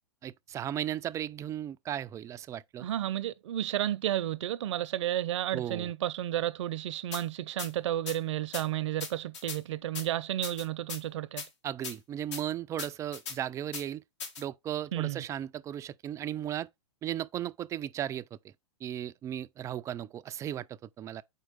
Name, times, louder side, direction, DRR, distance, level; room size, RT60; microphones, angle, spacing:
voice 1, 0.2-2.9 5.5-5.9 11.6-14.0 14.4-16.7 17.0-18.5 18.8-21.2, right 11 dB, 20° right, 0.3 m, -36 dB
voice 2, 2.8-11.4 14.9-15.2, right 12 dB, 65° right, 0.6 m, -32 dB
sound 1, 7.1-7.2 7.6-7.7 8.1-8.2 8.5-8.6 9.0-9.6 9.9-10.1 10.4-11.0 11.4-11.5 11.8-11.9 12.3-12.4 12.8-13.4 13.7-13.8 14.2-14.4, left 5 dB, 70° left, 2.0 m, -38 dB
4.5 x 4.4 x 5.1 m
hypercardioid pair, 120°, 16 cm